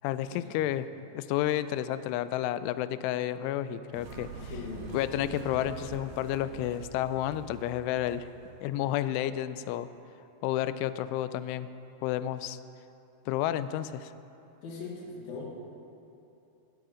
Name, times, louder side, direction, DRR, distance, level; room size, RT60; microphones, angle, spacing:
voice 1, 0.0-0.9 1.1-4.5 4.9-8.3 8.6-9.9 10.4-11.7 12.0-12.6 13.3-14.1, left 12 dB, 90° left, 13 dB, 3.0 m, -31 dB
sound 1, 3.9-8.8, right 4 dB, 60° right, 1.9 m, -45 dB
voice 2, 4.5-4.9 14.6-15.5, left 4 dB, 60° left, -2 dB, 3.4 m, -40 dB
17.5 x 13.5 x 5.0 m, 2.9 s
omnidirectional pair, 5.4 m